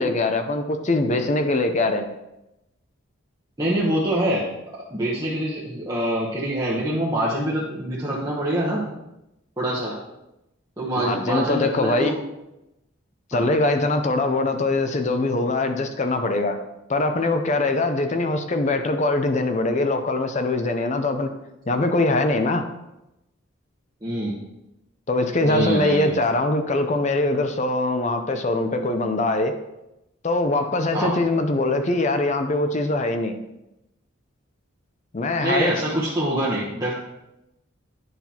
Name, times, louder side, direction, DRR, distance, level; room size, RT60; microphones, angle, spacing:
voice 1, 0.0-2.1 11.0-12.1 13.3-16.6 16.9-21.3 21.7-22.6 25.1-29.5 30.2-33.3 35.1-35.8, left 2 dB, 35° left, 7 dB, 0.5 m, -22 dB
voice 2, 3.6-4.5 4.9-8.8 9.6-10.0 10.8-12.2 13.3-13.5 24.0-24.3 25.4-26.1 30.9-31.1 35.4-36.9, right 1 dB, 20° right, -7 dB, 1.0 m, -25 dB
9.3 x 5.9 x 2.9 m, 0.91 s
head